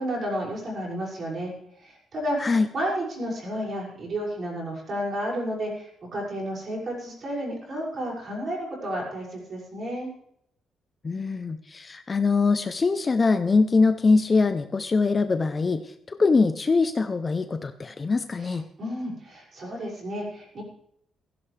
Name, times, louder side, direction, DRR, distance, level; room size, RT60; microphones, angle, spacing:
voice 1, 0.0-1.5 1.8-10.1 18.4-18.5 18.8-20.6, equal, 40° right, -4 dB, 6.3 m, -31 dB
voice 2, 11.0-15.8 16.1-18.6, left 4 dB, 25° left, 9 dB, 0.6 m, -23 dB
16.5 x 15.5 x 3.4 m, 0.71 s
cardioid pair, 160°, 0 cm